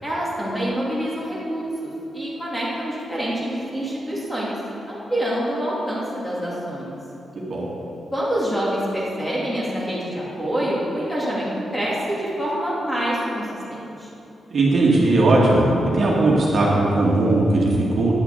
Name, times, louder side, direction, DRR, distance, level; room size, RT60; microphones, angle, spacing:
voice 1, 0.0-4.6 4.9-6.9 8.1-14.1, equal, 5° left, -6 dB, 2.6 m, -26 dB
voice 2, 7.4-7.7 14.5-15.7 15.9-18.1, right 2 dB, 45° right, -4 dB, 2.1 m, -18 dB
10.0 x 7.2 x 8.1 m, 2.9 s
wide cardioid pair, 160°, 0 cm